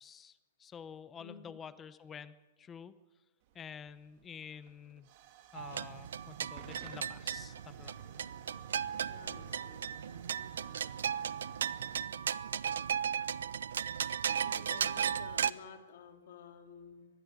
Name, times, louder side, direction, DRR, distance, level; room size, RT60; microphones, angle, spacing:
voice 1, 0.0-3.0 3.5-5.1 5.5-7.9, left 7 dB, 10° left, 15 dB, 0.7 m, -49 dB
voice 2, 1.2-1.6 5.4-5.5 9.1-9.9 14.4-17.1, left 6 dB, 50° left, 4 dB, 3.6 m, -52 dB
Hiss / Fire / Tick, 3.4-13.8, right 8 dB, 30° right, 2.3 m, -55 dB
sound 1, 5.5-15.5, right 8 dB, 80° right, 0.8 m, -36 dB
24.5 x 20.0 x 8.3 m, 1.3 s
hypercardioid pair, 175°, 0 cm